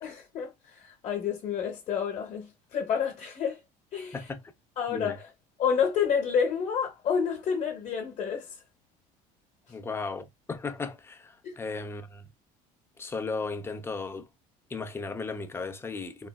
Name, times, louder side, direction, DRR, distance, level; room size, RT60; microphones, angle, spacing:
voice 1, 0.0-3.6 3.9-4.2 4.8-5.3 5.6-8.6 11.4-11.6, left 7 dB, 45° left, 0.8 m, -29 dB
voice 2, 9.7-12.3 13.0-14.3 14.7-16.3, left 4 dB, 15° left, 0.5 m, -35 dB
3.8 x 2.0 x 2.2 m
cardioid pair, 115°, 16 cm